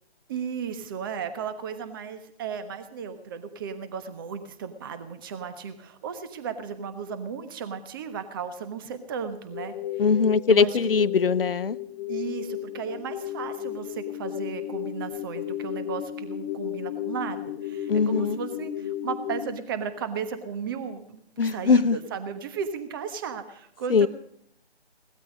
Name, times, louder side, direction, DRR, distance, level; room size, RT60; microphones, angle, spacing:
voice 1, 0.3-9.7 10.5-10.9 12.1-24.1, right 6 dB, 20° right, 10 dB, 1.2 m, -35 dB
sound 1, 9.5-19.5, left 12 dB, 10° left, 0.7 m, -34 dB
voice 2, 10.0-11.8 17.9-18.4 21.4-22.0 23.9-24.1, left 5 dB, 60° left, 17 dB, 0.8 m, -21 dB
18.0 x 13.0 x 5.1 m, 0.71 s
figure-of-eight pair, 145°, 32 cm